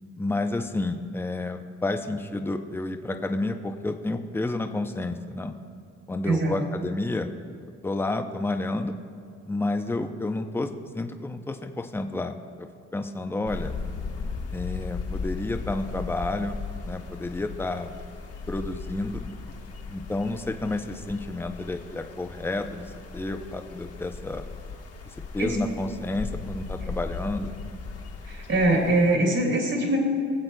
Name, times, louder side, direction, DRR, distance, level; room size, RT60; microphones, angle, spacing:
voice 1, 0.2-5.5 6.1-7.3 7.8-9.0 9.5-13.8 14.5-16.6 16.8-18.0 18.5-19.2 19.9-24.4 25.3-27.5, left 2 dB, 10° left, 6 dB, 0.6 m, -30 dB
voice 2, 6.2-6.6 25.4-25.6 28.2-30.0, right 2 dB, 55° right, -2 dB, 2.7 m, -23 dB
sound 1, 13.5-29.2, left 4 dB, 50° left, 1.2 m, -37 dB
23.0 x 7.7 x 2.2 m, 2.4 s
cardioid pair, 90°, 30 cm